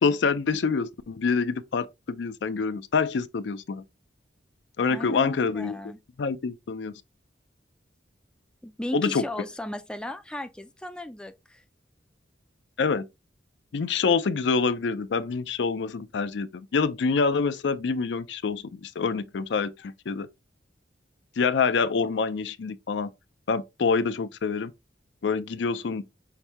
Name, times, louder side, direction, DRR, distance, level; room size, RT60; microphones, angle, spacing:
voice 1, 0.0-3.8 4.8-5.8 6.2-6.9 8.9-9.2 12.8-13.0 13.7-20.3 21.4-23.1 23.5-24.7 25.2-26.0, left 5 dB, 75° left, 0.4 m, -26 dB
voice 2, 4.9-6.0 8.6-11.6, left 1 dB, 5° left, 0.4 m, -35 dB
5.8 x 2.6 x 3.3 m
head